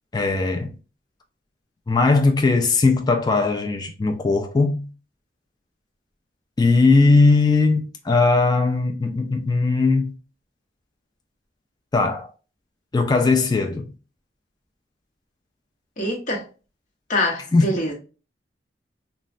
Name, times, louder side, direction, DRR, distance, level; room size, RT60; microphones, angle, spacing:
voice 1, 0.1-0.7 1.9-4.9 6.6-10.1 11.9-12.3 12.9-13.9 17.5-17.8, left 3 dB, 25° left, 0.3 m, -19 dB
voice 2, 16.0-16.4 17.1-17.9, left 1 dB, 45° left, 0.9 m, -24 dB
3.2 x 2.2 x 2.5 m
head